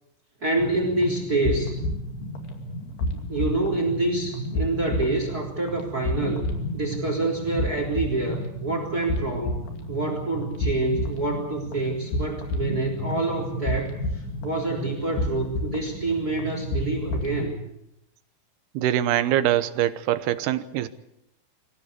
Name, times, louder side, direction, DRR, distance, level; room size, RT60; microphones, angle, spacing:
voice 1, 0.4-1.8 3.3-17.6, right 2 dB, 25° right, 4 dB, 4.0 m, -27 dB
sound 1, 0.6-17.5, left 1 dB, 80° left, 4.5 m, -31 dB
voice 2, 18.7-20.9, right 12 dB, 85° right, 12 dB, 3.1 m, -23 dB
25.5 x 16.5 x 8.3 m, 0.83 s
omnidirectional pair, 4.5 m